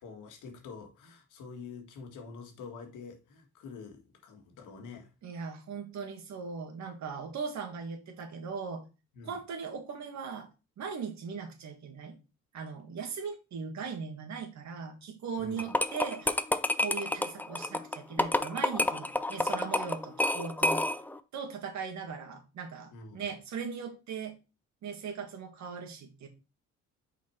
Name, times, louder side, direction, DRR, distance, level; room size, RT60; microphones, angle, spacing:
voice 1, 0.0-5.1 9.1-9.4 15.4-15.7 22.9-23.2, left 4 dB, 85° left, 1.7 m, -46 dB
voice 2, 5.2-8.8 9.2-10.5 10.8-12.2 12.5-16.4 16.8-20.8 21.3-24.4 24.8-26.3, right 5 dB, 65° right, 1.8 m, -39 dB
sound 1, 15.6-21.2, left 1 dB, 5° left, 0.5 m, -29 dB
5.9 x 4.2 x 4.4 m
cardioid pair, 90°, 30 cm